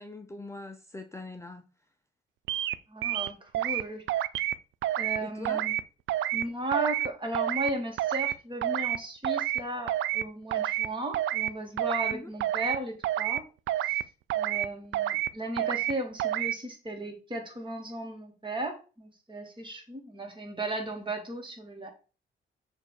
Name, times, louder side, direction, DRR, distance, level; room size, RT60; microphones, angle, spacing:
voice 1, 0.0-1.7 5.2-5.6 12.1-12.3, left 2 dB, 15° left, 0.6 m, -42 dB
sound 1, 2.5-2.7 3.0-3.8 4.1-4.5 4.8-5.2 5.4-5.8 6.1-6.4 6.7-7.1 7.3-7.7 8.0-8.3 8.6-9.0 9.2-9.6 9.9-10.2 10.5-10.9 11.1-11.5 11.8-12.1 12.4-12.8 13.0-13.4 13.7-14.0 14.3-14.7 14.9-15.3 15.6-15.9 16.2-16.5, right 13 dB, 75° right, 0.5 m, -28 dB
voice 2, 2.9-4.0 5.0-5.7 6.3-13.4 13.8-14.0 14.3-21.9, right 2 dB, 25° right, 2.4 m, -35 dB
6.8 x 3.4 x 4.5 m
cardioid pair, 90°, 20 cm